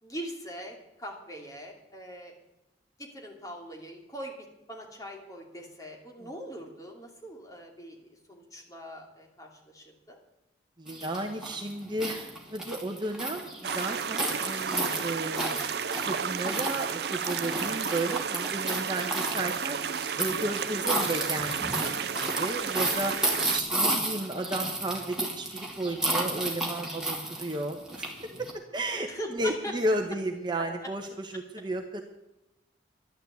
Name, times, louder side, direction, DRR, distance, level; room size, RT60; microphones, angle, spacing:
voice 1, 0.0-2.3 3.0-10.2 23.6-23.8 28.8-29.7, equal, 20° left, 0 dB, 2.8 m, -42 dB
voice 2, 10.8-15.8 16.0-19.8 20.2-21.9 22.2-23.1 23.5-28.0 28.4-32.0, right 1 dB, 25° right, 4 dB, 1.2 m, -33 dB
sound 1, 10.9-28.5, right 2 dB, 5° right, 2.4 m, -33 dB
sound 2, 13.6-23.6, right 7 dB, 60° right, 0.6 m, -32 dB
11.5 x 11.5 x 8.3 m, 0.95 s
head